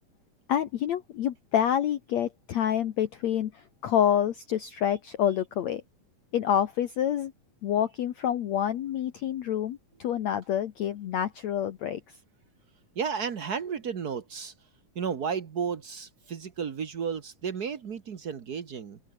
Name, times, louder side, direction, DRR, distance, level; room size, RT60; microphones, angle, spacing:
voice 1, 0.5-5.8 6.3-7.3 7.6-12.0, left 10 dB, 60° left, 2.1 m, -27 dB
voice 2, 12.9-14.5 14.9-19.0, right 6 dB, 85° right, 0.8 m, -33 dB
open air
omnidirectional pair, 4.1 m